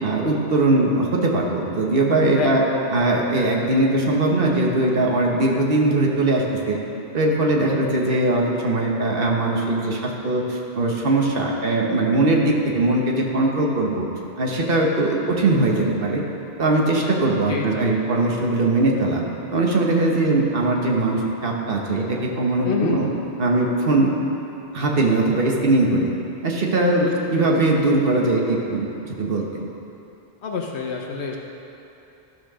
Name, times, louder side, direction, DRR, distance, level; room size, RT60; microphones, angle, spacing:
voice 1, 0.0-2.6 2.9-6.8 7.1-14.0 14.4-16.2 16.6-19.2 19.5-23.1 23.4-24.1 24.7-26.1 26.4-29.6, right 2 dB, 60° right, -1 dB, 1.4 m, -20 dB
voice 2, 2.4-2.9 7.6-8.0 17.5-17.9 22.6-23.0 27.0-27.5 30.4-31.4, left 5 dB, 80° left, 0 dB, 1.1 m, -28 dB
13.5 x 4.7 x 6.2 m, 2.9 s
omnidirectional pair, 1.1 m